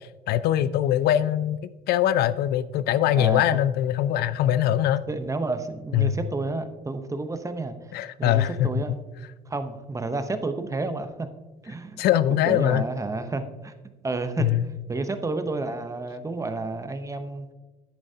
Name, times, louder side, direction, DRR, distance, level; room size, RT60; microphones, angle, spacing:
voice 1, 0.3-5.0 5.9-6.1 7.9-8.8 12.0-12.8 14.4-14.7, left 11 dB, 70° left, 15 dB, 0.4 m, -22 dB
voice 2, 3.1-3.4 5.1-9.0 9.5-11.3 11.6-13.7 14.0-14.5 14.9-17.5, right 3 dB, 20° right, 9 dB, 0.8 m, -31 dB
10.5 x 8.8 x 2.8 m, 1.2 s
cardioid pair, 110°, 17 cm